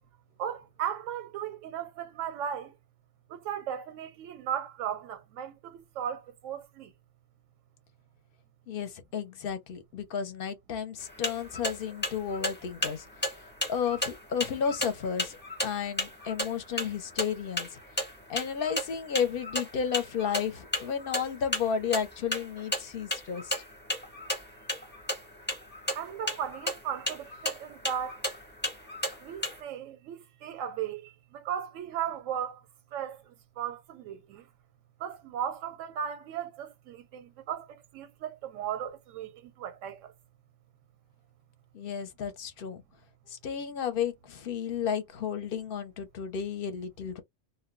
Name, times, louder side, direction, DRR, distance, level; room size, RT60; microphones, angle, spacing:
voice 1, 0.4-2.7 3.3-6.9 25.9-28.2 29.2-32.6 32.9-34.4 35.0-40.1, right 9 dB, 90° right, 1.0 m, -36 dB
voice 2, 8.7-13.0 13.7-15.4 15.6-17.8 18.3-23.5 41.7-42.8 43.3-47.2, left 7 dB, 55° left, 0.7 m, -32 dB
sound 1, 11.0-29.6, left 1 dB, 10° left, 0.7 m, -35 dB
2.1 x 2.1 x 3.7 m
omnidirectional pair, 1.3 m